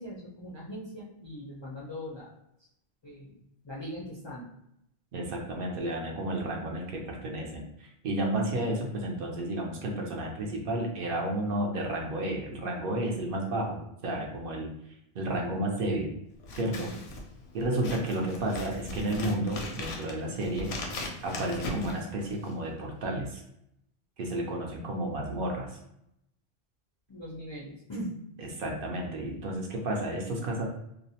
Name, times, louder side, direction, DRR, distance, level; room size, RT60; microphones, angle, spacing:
voice 1, 0.0-2.4 3.0-3.4 3.6-4.5 16.7-17.0 27.1-28.2, equal, 50° left, -6 dB, 0.3 m, -40 dB
voice 2, 5.1-14.7 15.1-16.2 16.6-16.9 17.5-21.0 21.2-23.4 24.2-25.7 28.6-30.6, right 1 dB, 65° right, 0 dB, 0.7 m, -32 dB
Scissors, 16.4-22.7, left 2 dB, 85° left, 0.8 m, -39 dB
2.5 x 2.0 x 2.7 m, 0.78 s
omnidirectional pair, 1.0 m